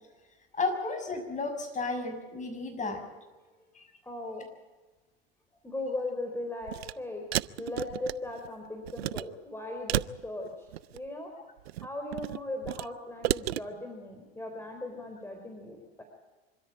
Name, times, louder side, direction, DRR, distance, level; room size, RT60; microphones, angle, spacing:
voice 1, 0.5-3.0 3.7-3.8, left 3 dB, 25° left, 5 dB, 6.4 m, -33 dB
voice 2, 4.0-4.5 5.6-7.3 7.6-11.3 11.8-16.0, left 2 dB, 10° left, 3 dB, 4.1 m, -38 dB
sound 1, 6.6-6.9 7.3-8.5 8.9-9.2 9.9-11.1 11.6-12.9 13.2-13.6, right 15 dB, 80° right, 0.6 m, -32 dB
25.5 x 13.5 x 9.0 m, 1.2 s
hypercardioid pair, 95°, 31 cm